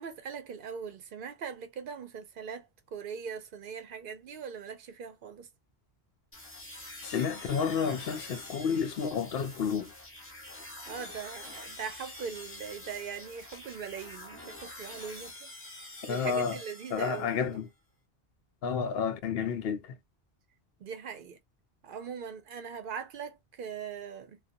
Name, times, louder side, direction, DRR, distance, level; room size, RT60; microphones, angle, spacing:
voice 1, 0.0-5.5 10.9-15.5 16.1-17.6 20.8-21.4 21.8-24.4, right 6 dB, 60° right, 0.7 m, -41 dB
sound 1, 6.3-17.5, left 1 dB, 15° left, 0.8 m, -46 dB
voice 2, 7.0-9.9 16.1-16.6 16.9-17.7 18.6-20.0, left 6 dB, 75° left, 0.8 m, -30 dB
2.5 x 2.3 x 2.5 m
omnidirectional pair, 1.0 m